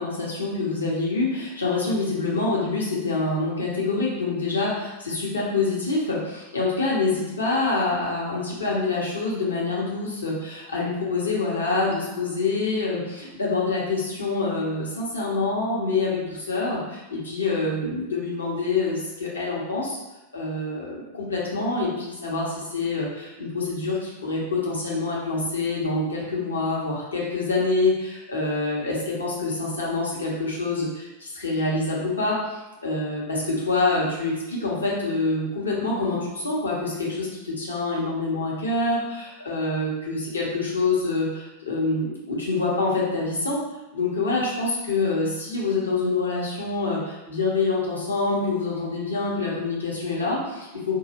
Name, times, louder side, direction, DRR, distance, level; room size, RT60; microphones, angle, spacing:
voice 1, 0.0-20.0 20.3-43.6 43.9-51.0, left 3 dB, 75° left, -4 dB, 1.0 m, -26 dB
4.5 x 2.4 x 3.0 m, 1.0 s
figure-of-eight pair, 90°, 0 cm